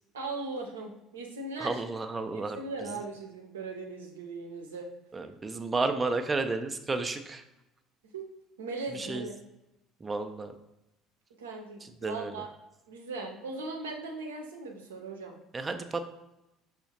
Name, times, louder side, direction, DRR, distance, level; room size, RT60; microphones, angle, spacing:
voice 1, 0.1-1.8 2.3-4.9 8.1-8.3 8.6-9.3 11.4-12.5 12.9-15.4, right 3 dB, 80° right, 1 dB, 0.6 m, -39 dB
voice 2, 1.6-2.6 5.1-7.4 8.9-9.2 10.0-10.5 11.8-12.3 15.5-16.1, right 3 dB, 20° right, 7 dB, 0.3 m, -32 dB
6.1 x 2.1 x 2.8 m, 0.93 s
figure-of-eight pair, 60°, 0 cm